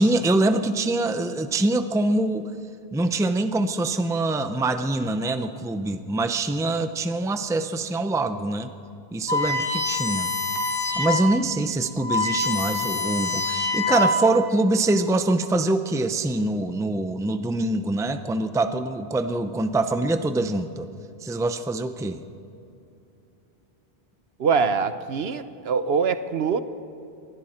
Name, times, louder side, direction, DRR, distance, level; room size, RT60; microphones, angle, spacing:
voice 1, 0.0-2.5 2.9-8.7 9.1-10.3 10.9-20.9 21.2-22.2, right 2 dB, 5° right, 9 dB, 0.5 m, -24 dB
sound 1, 9.3-11.3 11.7-11.8 12.0-14.4, left 2 dB, 85° left, 3.4 m, -25 dB
voice 2, 24.4-26.6, right 5 dB, 70° right, 12 dB, 1.1 m, -23 dB
27.0 x 22.5 x 4.4 m, 2.7 s
omnidirectional pair, 1.1 m